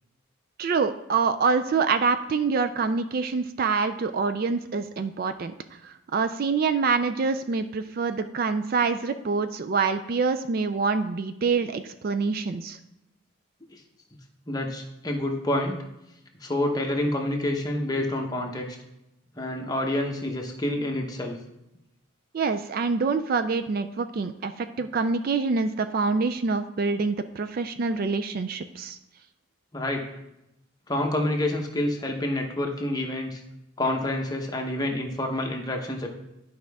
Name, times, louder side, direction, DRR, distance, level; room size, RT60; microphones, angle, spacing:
voice 1, 0.6-5.5 5.8-12.8 22.3-29.0, right 4 dB, 45° right, 10 dB, 0.3 m, -26 dB
voice 2, 14.5-15.8 16.4-18.7 19.4-21.4 29.7-30.0 30.9-33.4 33.8-36.1, left 1 dB, 20° left, 2 dB, 0.9 m, -28 dB
11.0 x 4.9 x 3.5 m, 0.89 s
head